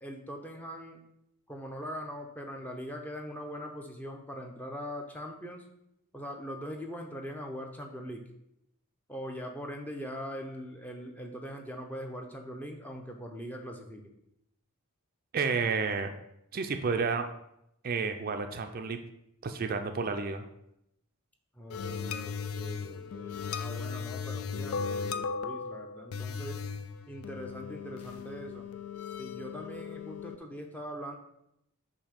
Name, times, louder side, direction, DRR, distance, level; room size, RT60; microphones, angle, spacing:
voice 1, 0.0-1.0 1.5-5.6 6.1-8.3 9.1-14.1 21.5-26.6 27.1-28.7 29.2-31.2, equal, 5° left, 2 dB, 0.6 m, -41 dB
voice 2, 15.3-16.1 16.5-17.3 17.8-19.0 19.4-20.4, right 5 dB, 40° right, 6 dB, 0.4 m, -30 dB
sound 1, 21.7-30.3, left 5 dB, 70° left, 0.4 m, -37 dB
7.1 x 2.7 x 5.1 m, 0.80 s
head